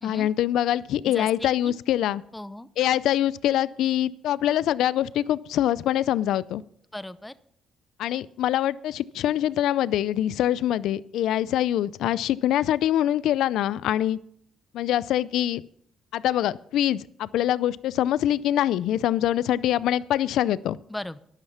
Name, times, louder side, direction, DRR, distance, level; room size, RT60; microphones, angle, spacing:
voice 1, 0.0-2.2 2.8-6.6 8.0-14.2 14.7-15.6 16.1-20.8, left 12 dB, 85° left, 19 dB, 0.5 m, -24 dB
voice 2, 1.0-1.7 2.3-2.7 6.9-7.3 20.9-21.2, left 1 dB, 10° left, 15 dB, 0.8 m, -37 dB
11.5 x 11.5 x 5.7 m, 0.64 s
cardioid pair, 90°, 0 cm